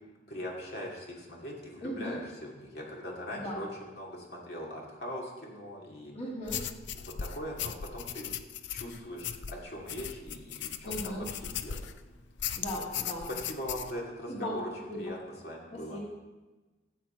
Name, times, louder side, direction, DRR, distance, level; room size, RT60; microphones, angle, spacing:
voice 1, 0.3-6.1 7.0-8.3 8.7-11.9 12.7-12.8 13.3-14.7 15.0-15.2 15.4-16.0, equal, 60° left, -2 dB, 2.6 m, -41 dB
voice 2, 1.8-2.2 3.3-3.6 6.1-6.6 10.8-11.3 12.6-13.3 14.3-14.6 14.9-15.1 15.7-16.0, equal, 35° left, -4 dB, 2.2 m, -37 dB
sound 1, 6.5-12.0 12.4-13.9, left 9 dB, 75° left, 0.5 m, -38 dB
16.5 x 7.8 x 4.5 m, 1.2 s
head